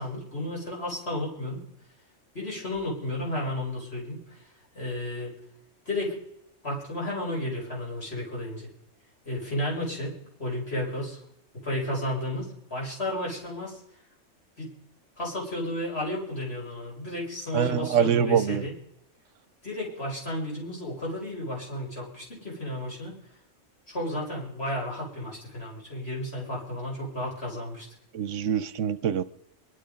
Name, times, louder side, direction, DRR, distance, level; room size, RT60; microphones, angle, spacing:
voice 1, 0.0-1.6 2.3-4.4 4.7-5.3 5.9-6.2 6.6-8.7 9.3-10.1 10.4-11.2 11.6-13.8 14.6-14.7 15.2-18.7 19.6-23.2 23.9-27.9, left 1 dB, 55° left, -3 dB, 5.7 m, -32 dB
voice 2, 17.5-18.6 28.1-29.2, right 8 dB, 75° right, 15 dB, 1.1 m, -24 dB
22.0 x 11.5 x 5.2 m, 0.79 s
omnidirectional pair, 1.3 m